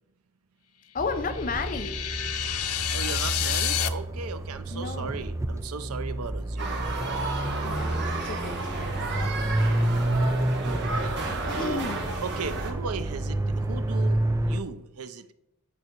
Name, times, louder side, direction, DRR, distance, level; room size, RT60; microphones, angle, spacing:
voice 1, 0.9-2.0 4.7-5.2 7.6-9.9 11.3-12.1, left 4 dB, 40° left, 9 dB, 0.7 m, -34 dB
sound 1, 1.0-14.6, right 1 dB, 15° right, 0.4 m, -29 dB
sound 2, 1.1-3.9, left 11 dB, 85° left, 0.6 m, -29 dB
voice 2, 2.9-7.1 10.6-11.2 11.4-11.8 12.2-15.3, right 5 dB, 90° right, 11 dB, 0.6 m, -37 dB
sound 3, 6.6-12.7, right 2 dB, 55° right, 1.5 m, -33 dB
8.9 x 5.4 x 4.6 m, 0.84 s
head